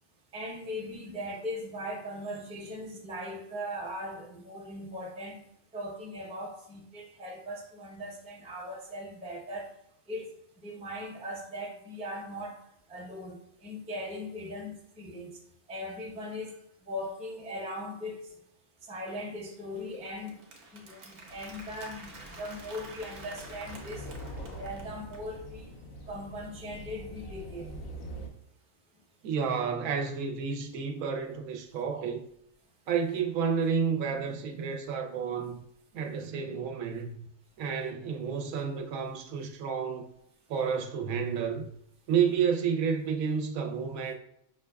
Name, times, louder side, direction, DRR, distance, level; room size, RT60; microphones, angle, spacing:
voice 1, 0.3-5.4 5.7-9.7 10.1-10.3 10.6-12.6 12.9-15.3 15.7-16.6 16.9-18.3 18.8-20.4 20.7-24.1 24.6-25.7 26.1-27.8, left 1 dB, 10° right, 0.4 m, -39 dB
Applause, 19.5-25.3, right 2 dB, 60° right, 0.9 m, -49 dB
sound 1, 21.3-28.3, equal, 80° left, 1.0 m, -44 dB
voice 2, 29.2-32.3 32.9-35.6 35.9-37.3 37.6-40.1 40.5-41.7 42.1-44.1, right 6 dB, 85° right, 1.0 m, -30 dB
5.8 x 2.2 x 2.2 m
omnidirectional pair, 1.4 m